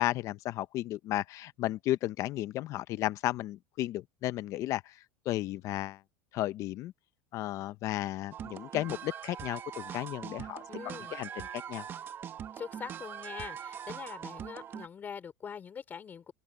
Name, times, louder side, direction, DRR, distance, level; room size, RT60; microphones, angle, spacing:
voice 1, 0.0-6.0 6.3-6.9 7.3-11.9, left 15 dB, 45° left, 0.7 m, -34 dB
sound 1, 8.3-14.9, right 9 dB, 30° right, 0.9 m, -42 dB
voice 2, 10.7-11.1 12.5-16.3, left 7 dB, 25° left, 4.4 m, -43 dB
cardioid pair, 150°, 8 cm